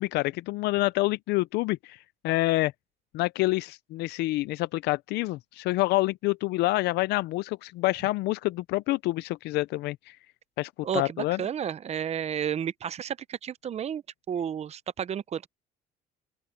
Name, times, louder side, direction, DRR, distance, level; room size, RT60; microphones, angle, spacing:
voice 1, 0.0-2.0 2.2-2.7 3.1-10.2 10.6-11.4, left 19 dB, 80° left, 0.5 m, -27 dB
voice 2, 10.8-14.0 14.3-15.5, right 8 dB, 40° right, 0.7 m, -32 dB
open air
cardioid pair, 110°, 17 cm